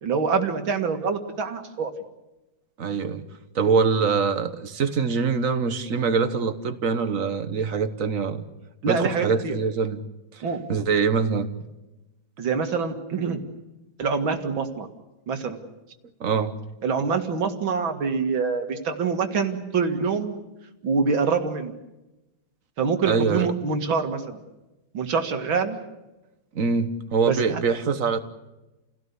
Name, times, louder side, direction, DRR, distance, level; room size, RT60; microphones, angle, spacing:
voice 1, 0.0-1.9 8.8-9.6 10.4-10.6 12.4-13.4 14.0-14.9 15.3-15.6 16.8-20.4 20.8-21.7 22.8-24.4 24.9-25.8 27.3-27.6, right 5 dB, 85° right, 5 dB, 2.7 m, -25 dB
voice 2, 2.8-3.2 3.5-8.4 8.9-10.0 10.3-10.4 10.7-11.5 16.2-16.5 23.1-23.5 26.5-28.2, right 5 dB, 45° right, 10 dB, 1.5 m, -24 dB
28.5 x 17.0 x 8.4 m, 1.0 s
omnidirectional pair, 2.1 m